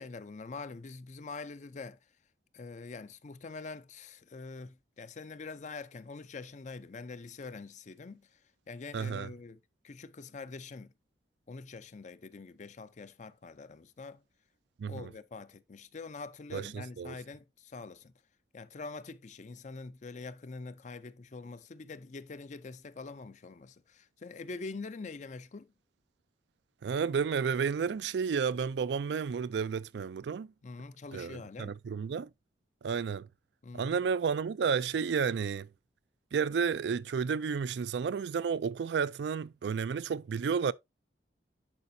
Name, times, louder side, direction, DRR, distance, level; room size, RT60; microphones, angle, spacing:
voice 1, 0.0-2.0 2.5-8.4 8.7-10.9 11.5-14.2 14.9-18.1 18.5-25.7 30.6-31.8 33.6-33.9, left 4 dB, 40° left, 0.5 m, -44 dB
voice 2, 8.9-9.3 14.8-15.1 16.5-17.2 26.8-30.5 31.1-32.3 32.8-33.3 33.7-35.7 36.3-40.7, right 6 dB, 70° right, 0.4 m, -31 dB
10.5 x 4.9 x 2.6 m
head